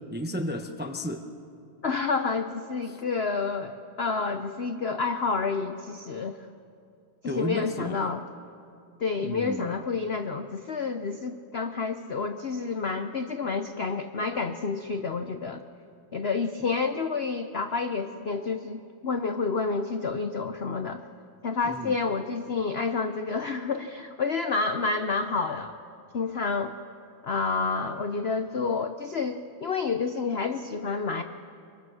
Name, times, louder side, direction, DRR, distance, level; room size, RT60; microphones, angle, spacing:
voice 1, 0.1-1.2 7.2-8.1 9.2-9.7 21.7-21.9, equal, 10° right, 5 dB, 0.4 m, -33 dB
voice 2, 1.8-6.4 7.2-8.2 9.0-15.6 16.1-21.0 21.4-25.8 26.1-26.7 27.2-31.2, left 4 dB, 80° left, 7 dB, 0.5 m, -29 dB
24.0 x 24.0 x 6.4 m, 2.5 s
omnidirectional pair, 2.2 m